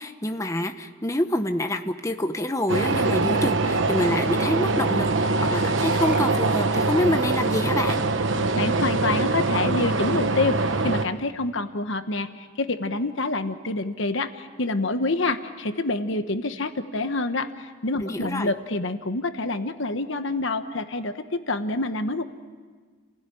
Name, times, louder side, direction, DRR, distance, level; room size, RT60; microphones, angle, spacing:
voice 1, 0.0-8.0 18.0-18.5, left 1 dB, 15° left, 7 dB, 1.0 m, -27 dB
sound 1, 2.7-11.0, right 3 dB, 65° right, 1.1 m, -23 dB
Musical instrument, 5.0-9.3, equal, 10° right, 4.5 m, -48 dB
voice 2, 8.5-22.2, left 2 dB, 65° left, 9 dB, 1.2 m, -27 dB
29.5 x 16.5 x 10.0 m, 1.5 s
head